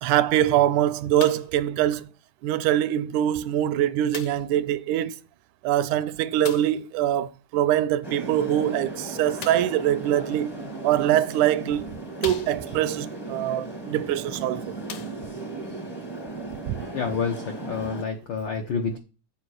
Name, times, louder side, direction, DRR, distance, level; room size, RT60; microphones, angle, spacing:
voice 1, 0.0-2.0 2.4-5.2 5.6-10.5 10.8-11.8 12.2-14.7 16.7-16.8, right 12 dB, 80° right, 1.9 m, -23 dB
sound 1, 1.2-1.6 2.5-2.6 4.1-4.6 6.4-6.8 9.4-9.8 10.8-10.9 11.5-11.6 12.2-12.9 14.2-14.3 14.8-15.5 16.4-16.5, left 7 dB, 65° left, 1.5 m, -39 dB
sound 2, 8.0-18.0, right 3 dB, 25° left, 0.5 m, -36 dB
voice 2, 16.9-19.0, left 5 dB, 80° left, 1.0 m, -28 dB
7.0 x 4.7 x 6.3 m
omnidirectional pair, 3.6 m